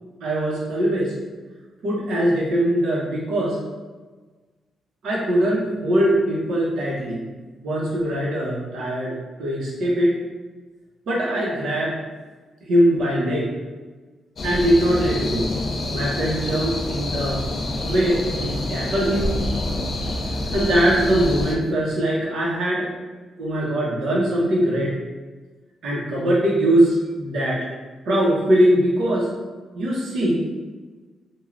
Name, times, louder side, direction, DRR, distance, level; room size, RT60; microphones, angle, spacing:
voice 1, 0.2-1.1 1.8-3.6 5.0-7.2 7.6-10.2 11.1-11.9 12.7-13.5 14.4-15.5 15.9-17.5 17.8-19.3 20.5-22.9 23.4-24.9 25.8-27.7 28.1-29.3 29.7-30.4, right 1 dB, 70° right, -4 dB, 0.8 m, -21 dB
sound 1, 14.4-21.6, left 1 dB, 35° left, 0.3 m, -27 dB
3.1 x 2.2 x 2.4 m, 1.3 s
wide cardioid pair, 170°, 0 cm